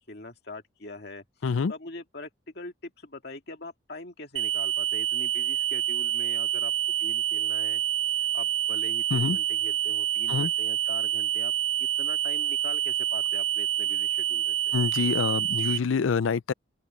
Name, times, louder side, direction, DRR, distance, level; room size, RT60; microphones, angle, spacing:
voice 1, 0.0-2.3 2.5-6.7 7.0-7.8 8.1-11.5 11.8-14.7, left 2 dB, 55° left, 2.2 m, -43 dB
sound 1, 4.4-15.8, right 12 dB, 75° right, 1.2 m, -27 dB
voice 2, 14.7-16.5, left 5 dB, 80° left, 0.5 m, -26 dB
open air
head